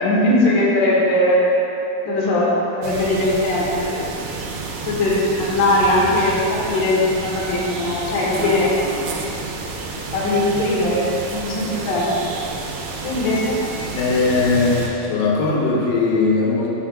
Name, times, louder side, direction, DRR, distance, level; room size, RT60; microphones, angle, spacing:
voice 1, 0.0-1.4 2.0-2.5 2.8-4.1 4.8-8.7 10.1-12.1 13.0-13.6, left 1 dB, 60° left, -6 dB, 2.8 m, -19 dB
sound 1, 2.8-14.9, right 4 dB, 80° right, 2.6 m, -30 dB
voice 2, 13.9-16.7, left 3 dB, 85° left, -3 dB, 3.5 m, -19 dB
13.0 x 7.1 x 2.5 m, 3.0 s
omnidirectional pair, 5.2 m